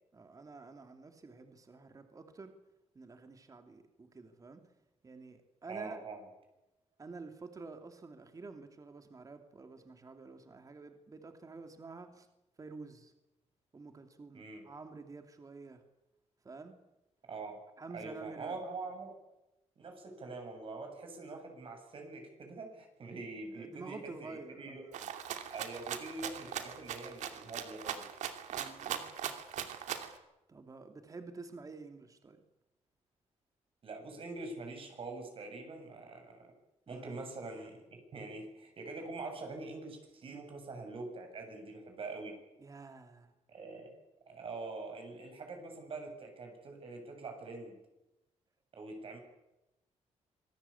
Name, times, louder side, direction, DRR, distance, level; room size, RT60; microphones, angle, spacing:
voice 1, 0.1-2.5 2.9-4.6 5.0-6.0 7.0-12.3 12.6-13.1 13.7-15.8 16.4-16.8 17.8-18.6 23.5-25.1 28.5-29.1 30.5-32.4 36.9-37.2 42.6-43.3, right 4 dB, 30° right, 6 dB, 2.7 m, -49 dB
voice 2, 5.7-6.2 14.3-14.6 17.3-17.6 17.9-19.1 19.8-24.8 25.5-28.1 33.8-36.4 36.9-42.4 43.5-43.9 44.3-47.8 48.7-49.2, right 3 dB, 50° right, 3 dB, 7.4 m, -44 dB
Rattle (instrument), 24.9-30.2, right 9 dB, 85° right, 2.6 m, -40 dB
26.0 x 18.0 x 8.6 m, 0.93 s
cardioid pair, 110°, 12 cm